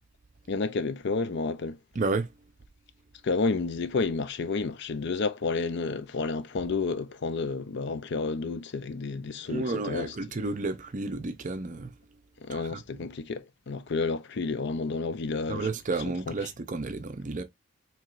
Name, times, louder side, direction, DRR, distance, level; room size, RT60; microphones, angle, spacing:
voice 1, 0.5-1.8 3.2-10.1 12.4-15.7 16.3-16.4, left 4 dB, 55° left, 0.5 m, -30 dB
voice 2, 1.9-2.3 9.5-12.0 12.5-12.8 15.5-17.4, right 3 dB, 40° right, 0.6 m, -31 dB
4.5 x 3.0 x 2.5 m
head